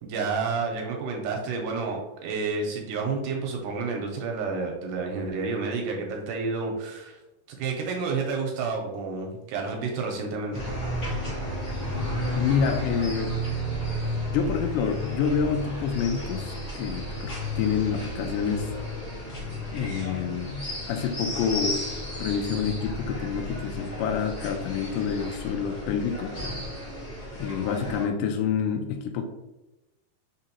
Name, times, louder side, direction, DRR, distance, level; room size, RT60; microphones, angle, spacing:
voice 1, 0.0-7.2 7.6-10.7, right 4 dB, 80° right, 1 dB, 2.1 m, -30 dB
sound 1, 10.5-28.0, equal, 45° left, 1.0 m, -33 dB
voice 2, 12.3-13.3 14.3-18.7 19.7-21.8 22.2-26.3 27.4-29.2, left 7 dB, 80° left, 5 dB, 2.1 m, -28 dB
5.1 x 3.6 x 2.8 m, 0.99 s
omnidirectional pair, 3.9 m